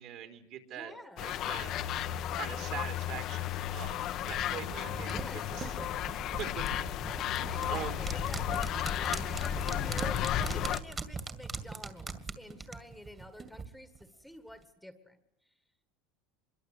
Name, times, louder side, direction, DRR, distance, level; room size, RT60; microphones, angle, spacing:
voice 1, 0.0-1.8 2.4-5.7 6.4-6.7 7.7-8.0 9.6-10.0, right 10 dB, 55° right, 7 dB, 3.8 m, -43 dB
voice 2, 0.7-1.4 5.1-6.1 7.5-15.2, left 1 dB, ahead, 10 dB, 1.7 m, -49 dB
sound 1, 1.2-10.8, left 11 dB, 45° left, 1.1 m, -34 dB
sound 2, 4.2-13.7 14.0-14.1, right 4 dB, 20° right, 2.2 m, -40 dB
25.0 x 22.5 x 8.3 m, 0.83 s
supercardioid pair, 140°, 0 cm